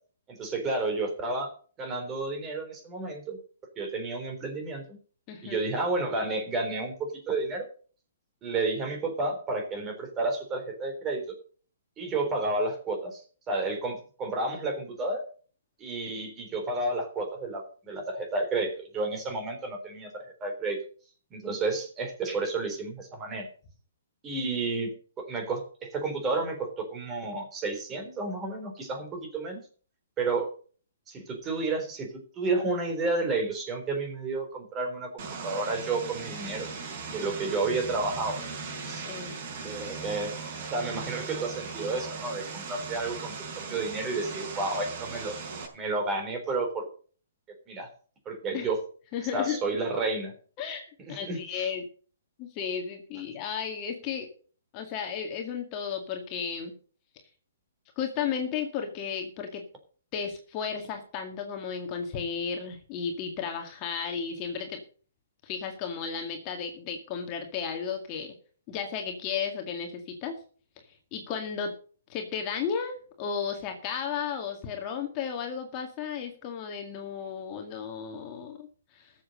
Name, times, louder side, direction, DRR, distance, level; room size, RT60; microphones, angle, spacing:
voice 1, 0.3-1.5 1.8-3.4 3.8-4.8 5.4-7.7 8.4-11.2 12.0-15.2 15.8-20.8 21.3-23.5 24.2-29.6 30.2-30.5 31.1-36.7 37.1-38.4 38.8-39.1 39.6-40.3 40.7-43.3 43.7-45.3 45.7-46.9 47.7-47.9 48.3-48.8 49.3-50.3 51.1-51.7, right 3 dB, 20° right, 4 dB, 3.7 m, -31 dB
voice 2, 5.3-5.6 39.1-39.4 48.5-48.7 49.1-49.6 50.6-51.9 52.4-54.3 54.7-56.7 58.0-59.6 60.1-64.8 65.4-68.3 68.7-70.3 71.1-71.7 72.1-79.1, left 7 dB, 30° left, 3 dB, 2.0 m, -34 dB
Vehicle, 35.2-45.7, right 4 dB, 40° right, 5.3 m, -38 dB
14.0 x 7.5 x 6.6 m, 0.42 s
hypercardioid pair, 150°, 0 cm